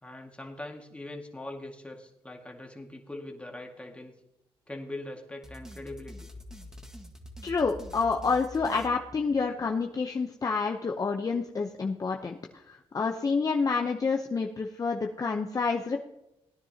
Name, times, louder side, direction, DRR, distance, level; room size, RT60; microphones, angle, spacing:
voice 1, 0.0-4.1 4.7-6.3, left 1 dB, 10° left, 2 dB, 2.0 m, -42 dB
sound 1, 5.4-9.7, left 1 dB, 5° right, 1.6 m, -46 dB
voice 2, 7.4-12.3 12.7-16.1, left 4 dB, 35° left, 2 dB, 0.8 m, -28 dB
17.5 x 10.0 x 2.9 m, 0.87 s
cardioid pair, 85°, 11 cm